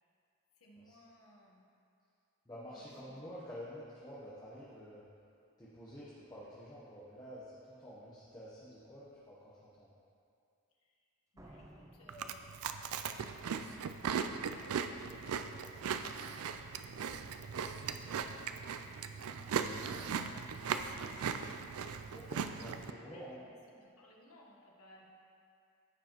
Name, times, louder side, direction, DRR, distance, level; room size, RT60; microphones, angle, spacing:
voice 1, 0.5-1.6 2.7-3.2 10.8-10.9 11.3-16.5 18.8-22.4 23.1-25.1, left 1 dB, 85° left, -2 dB, 1.2 m, -61 dB
voice 2, 2.4-5.0 5.6-9.9 17.3-17.6 22.1-23.4, equal, 15° left, -10 dB, 0.9 m, -49 dB
Slam, 11.4-13.3, right 1 dB, 15° right, 0.5 m, -57 dB
Chewing mastication, 12.1-22.9, right 6 dB, 85° right, 0.4 m, -38 dB
14.0 x 4.8 x 3.0 m, 2.4 s
head